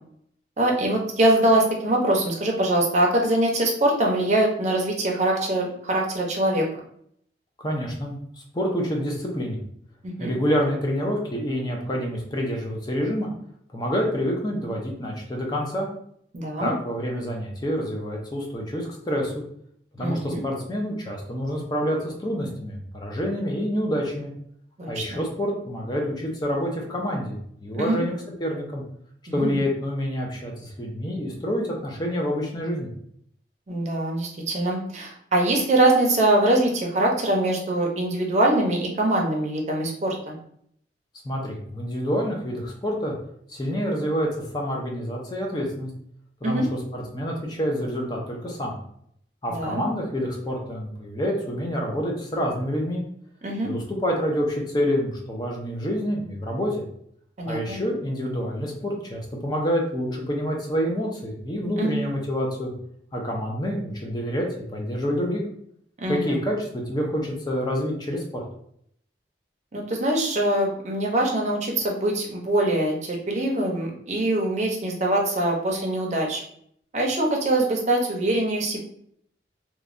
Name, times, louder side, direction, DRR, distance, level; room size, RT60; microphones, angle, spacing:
voice 1, 0.6-6.7 10.2-10.3 16.3-16.7 20.0-20.4 24.8-25.2 27.8-28.0 29.3-29.6 33.7-40.4 46.4-46.7 49.5-49.8 53.4-53.7 57.4-57.8 61.8-62.0 66.0-66.4 69.7-76.4 76.9-78.8, right 1 dB, 40° right, 0 dB, 0.6 m, -23 dB
voice 2, 7.6-8.2 8.5-9.6 10.2-13.3 13.7-15.9 16.6-19.4 20.0-24.3 24.9-27.4 27.6-28.1 28.4-28.8 29.3-32.9 41.2-43.1 43.5-44.3 44.5-45.9 46.4-48.7 49.4-53.0 53.6-56.7 57.5-62.7 63.1-65.4 66.1-68.4, equal, 25° left, 0 dB, 0.6 m, -27 dB
3.0 x 2.2 x 2.5 m, 0.67 s
head